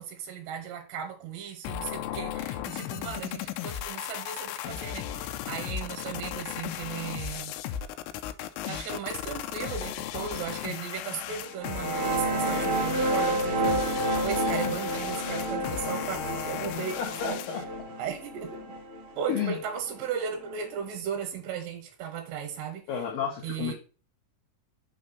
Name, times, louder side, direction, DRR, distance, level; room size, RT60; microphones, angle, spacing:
voice 1, 0.0-7.6 8.6-17.4 18.0-18.7 19.2-22.8 23.4-23.7, right 8 dB, 85° right, 2 dB, 3.1 m, -36 dB
sound 1, 1.6-17.6, left 11 dB, 90° left, 2.8 m, -36 dB
sound 2, 11.5-20.8, right 1 dB, 65° right, 1.2 m, -30 dB
voice 2, 17.0-17.6 19.3-19.6 22.9-23.7, left 8 dB, 70° left, -1 dB, 2.3 m, -31 dB
6.5 x 3.2 x 5.3 m, 0.37 s
omnidirectional pair, 4.9 m